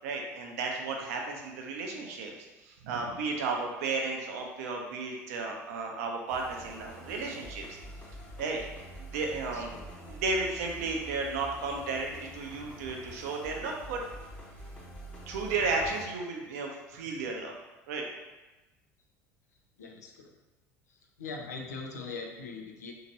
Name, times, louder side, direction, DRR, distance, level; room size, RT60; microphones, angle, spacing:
voice 1, 0.0-2.3 2.6-7.7 8.4-8.6 9.0-9.7 10.1-14.0 15.3-17.5 17.9-18.0, right 3 dB, 70° right, 1 dB, 0.6 m, -33 dB
sound 1, 6.3-16.0, right 1 dB, 15° left, 0.9 m, -46 dB
voice 2, 9.5-9.9 19.8-20.4 20.9-22.9, left 4 dB, 85° left, 2 dB, 0.4 m, -41 dB
2.9 x 2.8 x 2.7 m, 1.1 s
hypercardioid pair, 70°, 9 cm